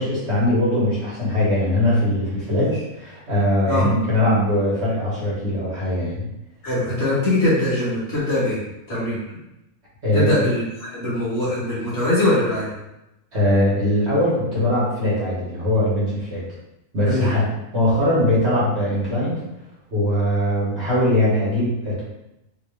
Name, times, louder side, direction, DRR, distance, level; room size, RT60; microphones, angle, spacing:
voice 1, 0.0-6.3 10.0-10.3 13.3-16.4 16.9-19.4 19.9-22.0, left 1 dB, 50° right, -7 dB, 1.5 m, -21 dB
voice 2, 6.6-8.6 8.9-9.2 10.1-12.7 17.0-17.3, left 1 dB, 50° left, -8 dB, 1.7 m, -22 dB
3.4 x 3.1 x 3.2 m, 0.90 s
omnidirectional pair, 1.6 m